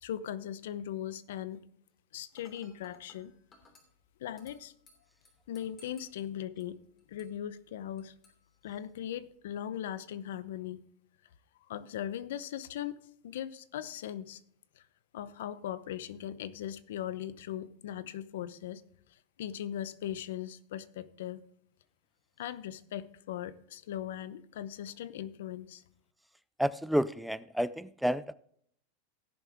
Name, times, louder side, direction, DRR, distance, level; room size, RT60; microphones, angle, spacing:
voice 1, 0.0-1.6 2.1-3.3 4.2-4.7 5.5-6.8 7.1-8.1 8.6-10.8 11.7-14.4 14.7-14.8 15.1-18.8 19.1-21.4 22.4-25.8, left 10 dB, 80° left, 0.8 m, -39 dB
Dishes pots and pans / Glass, 2.4-9.4, left 2 dB, 25° left, 3.0 m, -64 dB
voice 2, 26.6-28.3, equal, ahead, 0.3 m, -30 dB
17.0 x 7.2 x 3.5 m
supercardioid pair, 140°, 0 cm